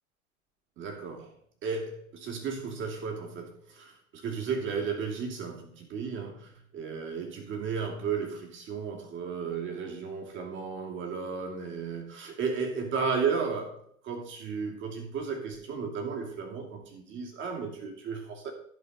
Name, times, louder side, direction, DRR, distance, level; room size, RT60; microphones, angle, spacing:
voice 1, 0.8-1.3 1.6-13.8 14.0-18.5, right 5 dB, 30° right, 2 dB, 2.8 m, -34 dB
14.5 x 5.1 x 5.5 m, 0.64 s
figure-of-eight pair, 95°, 42 cm